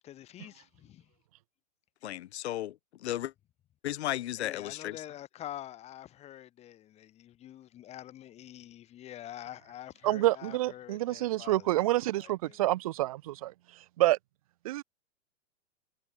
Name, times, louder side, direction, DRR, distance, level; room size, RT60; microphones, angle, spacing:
voice 1, 0.0-1.1 4.4-12.6, left 12 dB, 15° left, 2.7 m, -46 dB
voice 2, 2.0-3.3 3.8-5.0, left 13 dB, 55° left, 1.0 m, -34 dB
voice 3, 10.0-13.5 14.0-14.2 14.6-14.8, right 16 dB, 25° right, 0.6 m, -28 dB
supercardioid pair, 175°, 41 cm